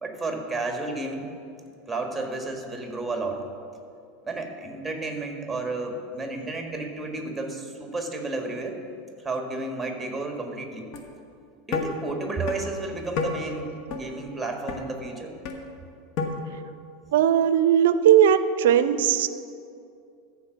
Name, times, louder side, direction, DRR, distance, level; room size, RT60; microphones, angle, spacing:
voice 1, 0.0-1.3 1.9-3.4 4.2-8.8 9.2-10.9 11.7-15.3, right 2 dB, 10° right, 3 dB, 1.5 m, -32 dB
sound 1, 10.9-11.1 11.7-11.8 12.5-12.6 13.2-13.3 13.9-14.0 14.7-14.8 15.4-15.6 16.2-16.3, left 5 dB, 55° left, 1.1 m, -28 dB
voice 2, 17.1-19.3, right 9 dB, 75° right, 13 dB, 0.5 m, -18 dB
14.0 x 4.6 x 6.2 m, 2.5 s
hypercardioid pair, 90°, 0 cm